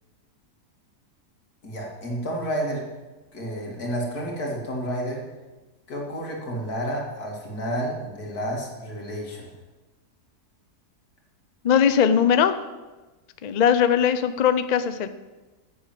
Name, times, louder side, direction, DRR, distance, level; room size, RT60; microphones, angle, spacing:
voice 1, 1.6-2.9 3.3-5.2 5.9-9.5, equal, 70° left, -1 dB, 2.9 m, -30 dB
voice 2, 11.6-12.6 13.4-15.1, left 8 dB, 90° left, 11 dB, 0.3 m, -20 dB
9.9 x 8.1 x 7.6 m, 1.2 s
omnidirectional pair, 1.7 m